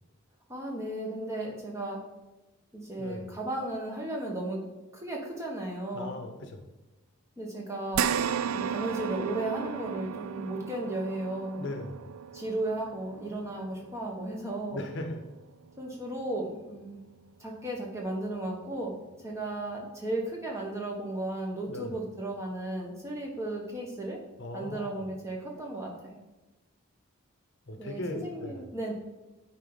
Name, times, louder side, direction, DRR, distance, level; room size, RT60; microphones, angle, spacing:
voice 1, 0.5-2.0 2.7-4.6 4.9-6.1 7.4-8.0 8.4-11.7 12.3-14.8 15.8-17.0 17.4-18.9 19.2-24.2 24.5-26.1 27.8-28.9, right 1 dB, 15° right, -1 dB, 1.2 m, -35 dB
voice 2, 3.0-3.3 5.9-6.7 11.6-12.1 14.7-15.2 21.7-22.0 24.4-25.1 27.7-28.6, left 1 dB, 55° left, 5 dB, 0.9 m, -38 dB
sound 1, 7.9-16.6 17.0-17.1 18.6-18.7, right 8 dB, 75° right, 0.3 m, -35 dB
9.2 x 4.5 x 4.0 m, 1.1 s
head